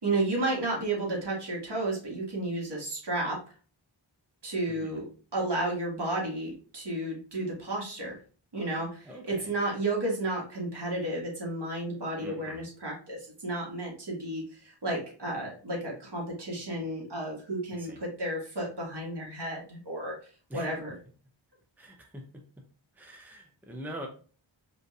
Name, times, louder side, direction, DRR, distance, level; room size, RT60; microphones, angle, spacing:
voice 1, 0.0-3.4 4.4-5.1 5.3-8.2 8.5-20.2 20.5-21.0, right 2 dB, 55° right, -3 dB, 1.9 m, -32 dB
voice 2, 12.2-12.6 17.8-18.0 20.5-20.7 21.8-22.2 23.0-24.1, equal, 5° right, 2 dB, 0.8 m, -43 dB
5.0 x 3.2 x 2.5 m, 0.40 s
wide cardioid pair, 55°, 48 cm